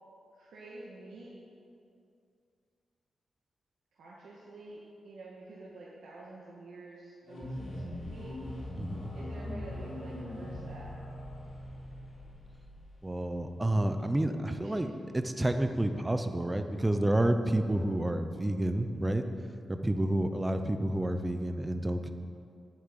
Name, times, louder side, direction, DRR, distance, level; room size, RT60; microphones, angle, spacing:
voice 1, 0.4-1.3 3.9-8.3 9.1-10.9 14.6-14.8, right 2 dB, 80° right, -6 dB, 2.0 m, -48 dB
sound 1, 7.2-13.9, left 1 dB, 45° left, 3.6 m, -42 dB
voice 2, 8.8-9.1 13.0-14.9 15.1-19.2 19.7-22.1, right 1 dB, 10° right, 7 dB, 0.6 m, -29 dB
8.6 x 8.5 x 9.2 m, 2.4 s
wide cardioid pair, 170°, 0 cm